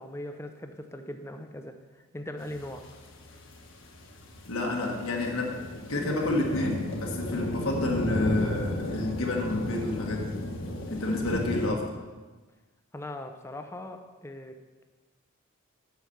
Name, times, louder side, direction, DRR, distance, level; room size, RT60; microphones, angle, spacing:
voice 1, 0.0-2.8 12.9-14.6, left 1 dB, 10° left, 6 dB, 0.6 m, -40 dB
sound 1, 2.4-11.7, left 1 dB, 65° left, 1.3 m, -33 dB
voice 2, 4.5-5.6 5.9-10.5 10.9-12.0, left 2 dB, 80° left, 0 dB, 1.5 m, -30 dB
8.2 x 5.8 x 6.4 m, 1.3 s
head